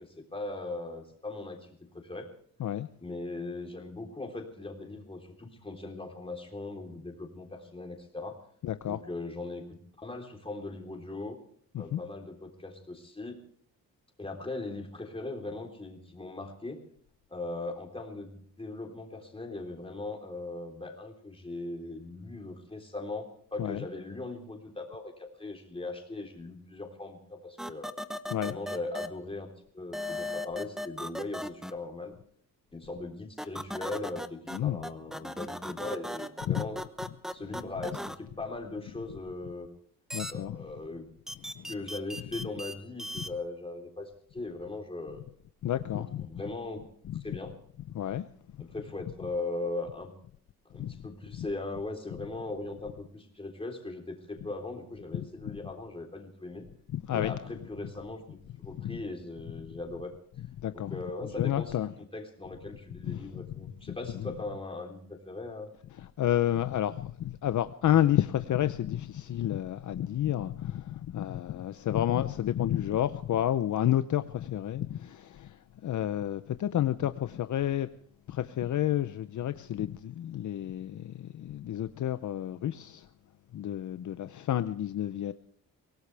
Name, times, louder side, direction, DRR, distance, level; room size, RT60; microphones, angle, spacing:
voice 1, 0.0-2.3 3.0-8.4 8.9-9.6 10.0-11.4 11.8-13.4 14.2-16.8 17.3-27.9 28.4-29.5 29.7-32.2 32.7-36.8 37.3-39.7 40.3-41.1 41.7-45.2 45.9-46.8 47.1-47.5 48.6-50.1 50.7-56.7 57.1-60.1 60.7-65.7, left 2 dB, 15° left, 3.7 m, -39 dB
voice 2, 8.6-9.0 11.7-12.0 23.6-23.8 28.3-28.6 34.5-34.8 36.5-36.6 40.1-40.6 41.6-41.7 45.6-46.3 47.1-47.2 47.9-48.2 50.8-51.0 51.3-51.5 55.2-55.6 56.9-57.3 58.8-59.0 60.6-61.9 63.0-63.5 63.9-64.0 66.0-77.9 78.3-83.1 83.5-85.3, left 11 dB, 60° left, 0.7 m, -30 dB
sound 1, 27.6-29.1 29.9-31.7 33.4-34.6 34.8-38.2 40.1-40.3 41.3-42.7 43.0-43.3, left 1 dB, ahead, 0.9 m, -37 dB
23.5 x 18.0 x 3.4 m
cardioid pair, 120°, 34 cm